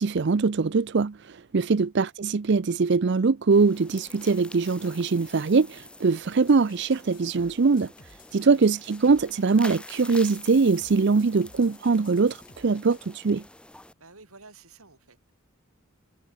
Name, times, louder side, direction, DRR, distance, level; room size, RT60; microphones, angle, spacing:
voice 1, 0.0-7.9 8.3-13.4, right 4 dB, 55° right, 0.5 m, -22 dB
sound 1, 3.5-13.9, left 1 dB, 5° left, 6.0 m, -46 dB
sound 2, 6.5-13.1, left 4 dB, 40° left, 5.4 m, -55 dB
voice 2, 8.3-8.6 14.0-15.3, right 3 dB, 85° right, 7.8 m, -52 dB
head